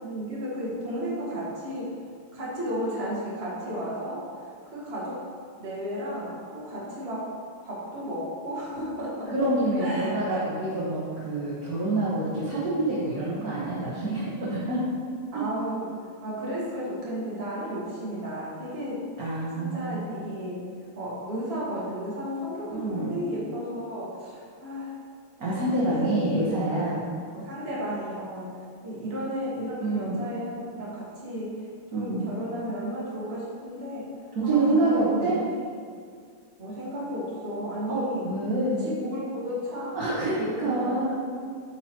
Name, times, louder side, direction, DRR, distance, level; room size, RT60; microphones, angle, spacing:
voice 1, 0.0-2.0 2.3-5.2 5.6-7.3 7.6-9.3 9.8-10.4 15.3-19.0 19.5-20.6 20.9-24.9 25.7-26.8 27.3-28.5 28.8-34.1 34.4-35.3 36.6-38.2 38.8-40.1 40.4-41.0, equal, 30° right, -7 dB, 1.6 m, -33 dB
voice 2, 9.3-14.8 15.3-15.4 19.2-20.0 22.7-23.1 25.4-27.0 29.8-30.2 31.9-32.4 34.3-35.4 37.9-38.9 39.9-41.1, right 2 dB, 50° right, -8 dB, 1.4 m, -27 dB
8.4 x 4.7 x 3.0 m, 2.1 s
omnidirectional pair, 2.3 m